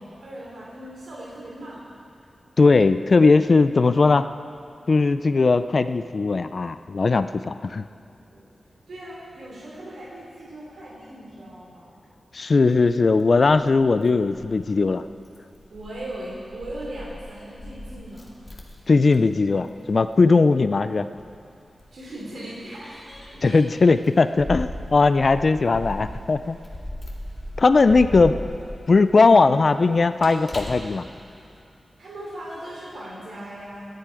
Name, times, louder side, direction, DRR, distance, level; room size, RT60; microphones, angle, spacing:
voice 1, 0.0-1.8 8.3-8.5 8.9-12.0 15.7-18.3 21.9-23.0 23.3-23.6 32.0-33.9, right 1 dB, 80° right, -6 dB, 3.5 m, -38 dB
voice 2, 2.6-4.3 4.9-7.9 12.3-15.0 18.9-21.1 23.4-26.6 27.6-28.4 28.9-31.0, left 3 dB, 45° left, 11 dB, 0.4 m, -18 dB
Keys jangling, 12.6-31.6, left 1 dB, 25° left, 2.2 m, -39 dB
25.0 x 10.5 x 4.9 m, 2.4 s
wide cardioid pair, 130°, 0 cm